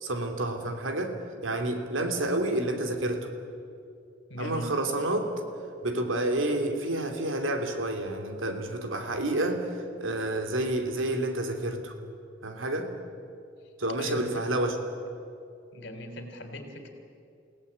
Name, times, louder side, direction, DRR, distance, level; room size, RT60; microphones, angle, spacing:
voice 1, 0.0-1.1 1.4-3.3 4.4-5.3 5.8-11.9 12.4-12.9 13.8-14.8, right 1 dB, 85° right, 5 dB, 2.9 m, -29 dB
voice 2, 4.3-4.7 14.0-14.4 15.7-16.9, equal, 65° left, 6 dB, 3.4 m, -38 dB
29.5 x 17.5 x 8.7 m, 2.5 s
head